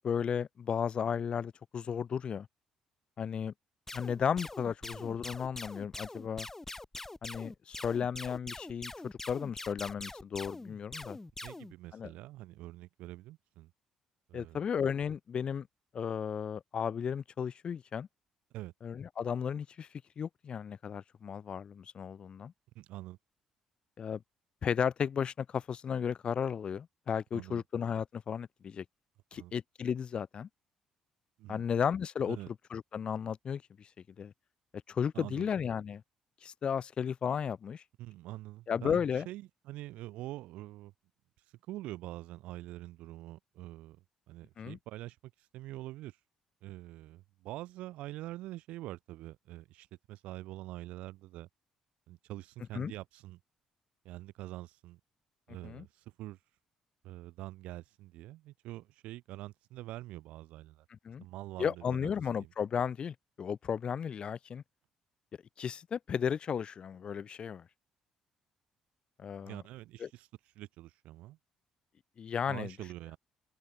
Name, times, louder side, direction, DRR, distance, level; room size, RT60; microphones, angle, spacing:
voice 1, 0.0-2.5 3.2-3.5 3.9-6.5 7.2-11.2 11.9-12.1 14.3-15.7 15.9-18.1 18.8-19.9 20.2-22.5 24.0-24.2 24.6-28.8 29.3-30.5 31.5-32.4 32.7-33.9 34.2-34.3 34.9-36.0 36.4-37.8 38.7-39.3 44.6-44.8 52.7-52.9 55.6-55.9 61.0-61.2 61.6-64.6 65.6-67.6 69.2-69.6 70.0-70.1 72.2-72.7, left 7 dB, 50° left, 0.8 m, -34 dB
sound 1, 3.9-11.7, left 2 dB, 15° left, 0.4 m, -44 dB
voice 2, 11.4-13.7 14.3-14.6 18.5-18.7 22.7-23.2 27.3-27.6 29.3-29.5 31.4-31.6 32.3-32.5 35.1-35.5 38.0-40.9 41.7-44.0 44.3-45.2 45.5-46.2 46.6-51.5 52.1-53.4 54.0-55.0 55.5-55.9 56.2-56.4 57.0-60.8 61.2-62.1 62.3-62.5 69.4-70.3 70.5-71.4 72.5-73.2, right 16 dB, 70° right, 0.9 m, -45 dB
open air
hypercardioid pair, 45°, 2 cm